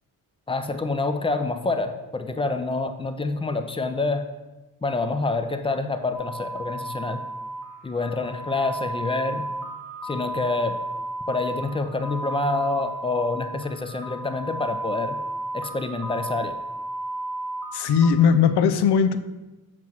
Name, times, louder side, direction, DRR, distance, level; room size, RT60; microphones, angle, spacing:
voice 1, 0.5-4.2 4.8-7.2 7.8-9.5 10.0-10.8 11.3-15.2 15.5-16.6, left 3 dB, 15° left, 8 dB, 0.3 m, -27 dB
sound 1, 6.1-18.1, right 2 dB, 50° left, 1.4 m, -33 dB
voice 2, 17.7-19.2, left 7 dB, 85° left, 11 dB, 0.6 m, -18 dB
7.6 x 3.0 x 5.9 m, 1.1 s
wide cardioid pair, 150°, 39 cm